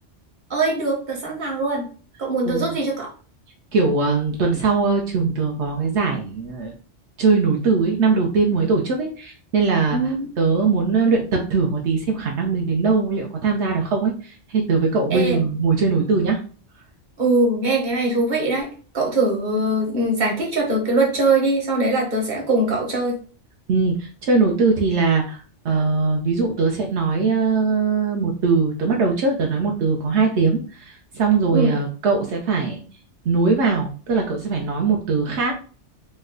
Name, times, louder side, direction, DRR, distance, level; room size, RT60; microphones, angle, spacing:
voice 1, 0.5-1.9 2.2-3.1 9.9-10.3 15.1-15.5 17.2-18.7 18.9-23.2 31.5-31.7, right 2 dB, 45° right, -1 dB, 1.1 m, -21 dB
voice 2, 2.5-2.8 3.7-6.7 7.2-16.4 23.7-25.4 25.6-32.8 33.3-35.5, right 4 dB, 75° right, 1 dB, 0.9 m, -21 dB
3.1 x 2.1 x 3.6 m, 0.41 s
omnidirectional pair, 1.2 m